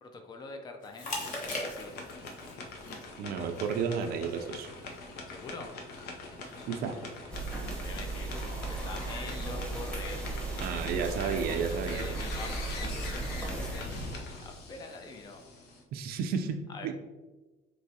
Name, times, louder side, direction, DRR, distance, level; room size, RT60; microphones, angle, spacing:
voice 1, 0.0-2.0 5.3-5.7 7.8-10.5 11.2-13.9 14.4-15.4 16.7-16.9, left 3 dB, 25° left, 5 dB, 0.4 m, -44 dB
Chewing mastication, 0.8-15.4, left 2 dB, 45° left, 1.0 m, -47 dB
sound 1, 1.0-15.8, left 2 dB, 70° left, 0.7 m, -43 dB
voice 2, 3.2-4.7 6.7-7.0 10.6-12.1 15.9-16.9, right 6 dB, 60° right, 6 dB, 0.5 m, -32 dB
sound 2, 7.3-14.3, right 2 dB, 5° left, 0.9 m, -36 dB
4.7 x 3.0 x 2.7 m, 1.2 s
cardioid pair, 125°, 18 cm